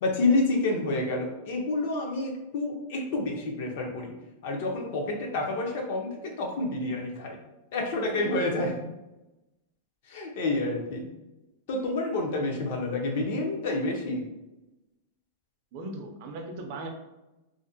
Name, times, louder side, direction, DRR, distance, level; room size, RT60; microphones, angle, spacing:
voice 1, 0.0-4.1 4.4-7.4 7.7-8.7 10.1-11.1 11.7-14.2, left 2 dB, 55° left, 2 dB, 0.5 m, -28 dB
voice 2, 15.7-16.9, right 2 dB, 40° right, 3 dB, 0.4 m, -38 dB
2.4 x 2.1 x 2.6 m, 0.99 s
supercardioid pair, 165°, 0 cm